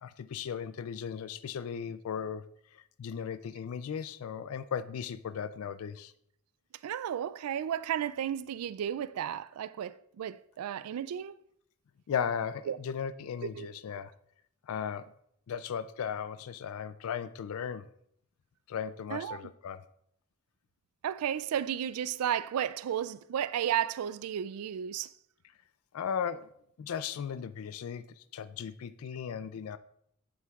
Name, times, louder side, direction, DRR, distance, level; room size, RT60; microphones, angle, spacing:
voice 1, 0.0-2.4 2.7-6.1 12.1-14.1 14.7-15.1 15.5-17.9 18.7-19.8 25.9-26.5 26.8-29.8, left 7 dB, 75° left, 0.4 m, -36 dB
voice 2, 6.8-11.4 12.7-12.8 13.5-13.7 19.1-19.4 21.0-25.1, right 9 dB, 85° right, 0.3 m, -33 dB
8.7 x 7.7 x 2.4 m
head